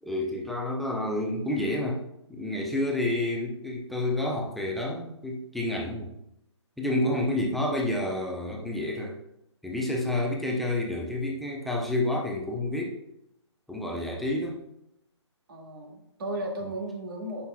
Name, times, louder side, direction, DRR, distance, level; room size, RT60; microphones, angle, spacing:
voice 1, 0.0-2.0 2.3-6.1 6.8-9.2 9.6-13.0 13.7-14.6, left 1 dB, ahead, -2 dB, 0.8 m, -29 dB
voice 2, 15.5-17.5, right 1 dB, 50° right, 1 dB, 2.1 m, -35 dB
14.5 x 5.6 x 2.3 m, 0.81 s
figure-of-eight pair, 145°, 16 cm